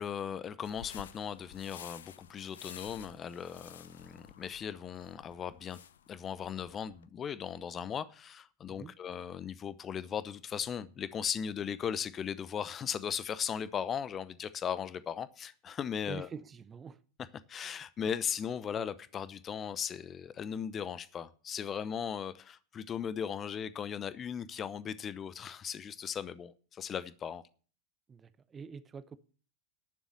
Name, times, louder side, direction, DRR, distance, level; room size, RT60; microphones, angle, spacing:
voice 1, 0.0-5.8 6.1-16.3 17.5-27.4, left 8 dB, 25° left, 0.8 m, -37 dB
sound 1, 0.6-7.0, left 9 dB, 60° left, 0.8 m, -52 dB
voice 2, 16.1-17.0 28.1-29.2, right 6 dB, 20° right, 0.8 m, -45 dB
11.0 x 7.3 x 9.6 m
figure-of-eight pair, 90°, 0 cm